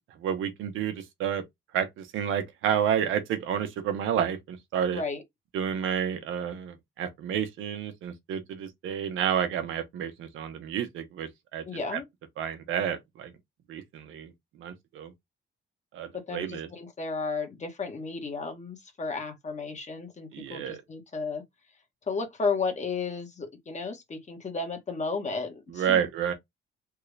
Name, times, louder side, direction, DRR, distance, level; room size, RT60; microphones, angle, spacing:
voice 1, 0.1-1.4 1.7-5.0 5.5-11.6 11.9-12.0 12.4-13.3 13.7-14.3 14.6-15.1 15.9-16.7 20.3-20.8 25.7-26.3, right 9 dB, 85° right, 1.0 m, -30 dB
voice 2, 4.9-5.2 11.6-12.0 16.1-21.4 22.1-26.0, left 4 dB, 35° left, 1.3 m, -33 dB
3.5 x 2.4 x 3.3 m
cardioid pair, 90°, 20 cm